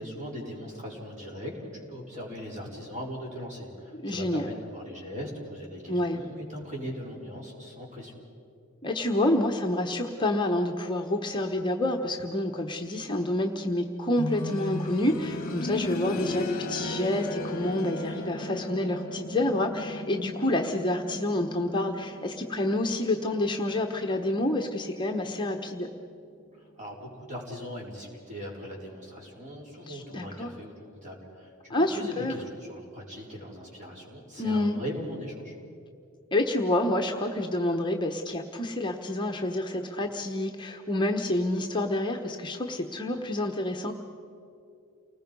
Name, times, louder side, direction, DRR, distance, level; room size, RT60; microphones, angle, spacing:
voice 1, 0.0-8.1 26.5-35.5, equal, 35° right, -2 dB, 4.8 m, -39 dB
voice 2, 4.0-4.5 5.9-6.2 8.8-25.9 29.9-30.5 31.7-32.3 34.4-34.8 36.3-43.9, left 1 dB, 20° left, 3 dB, 1.0 m, -28 dB
sound 1, 14.2-24.9 25.2-25.3 26.2-26.3, left 2 dB, 40° left, 1.2 m, -36 dB
29.5 x 19.5 x 5.4 m, 2.5 s
head